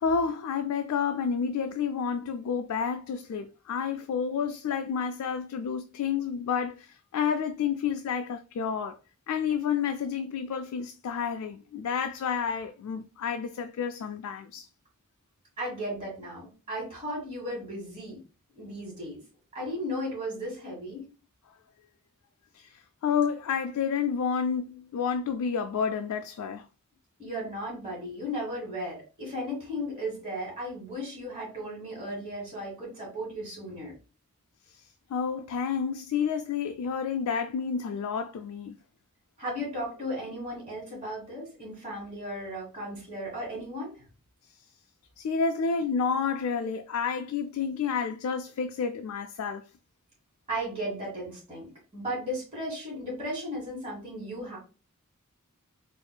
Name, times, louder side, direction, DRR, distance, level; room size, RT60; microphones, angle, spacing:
voice 1, 0.0-9.0 9.3-14.7 22.5-26.6 35.1-38.8 45.2-49.6, left 6 dB, 80° left, 0.3 m, -30 dB
voice 2, 15.6-18.2 18.6-19.2 19.5-21.1 27.2-33.9 39.4-44.0 50.5-51.7 51.9-54.6, equal, 25° right, 1.4 m, -35 dB
4.5 x 2.4 x 2.2 m
head